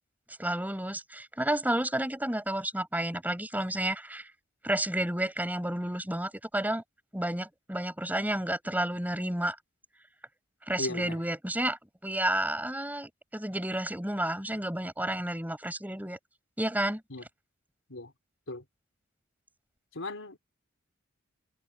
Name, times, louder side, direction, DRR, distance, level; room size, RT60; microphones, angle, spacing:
voice 1, 0.4-4.3 4.6-6.8 7.1-9.6 10.7-16.2 16.6-17.0, right 1 dB, 10° right, 6.6 m, -31 dB
voice 2, 10.8-11.2 17.1-17.2 17.9-18.1 18.5-18.6 19.9-20.4, left 2 dB, 70° left, 4.3 m, -37 dB
head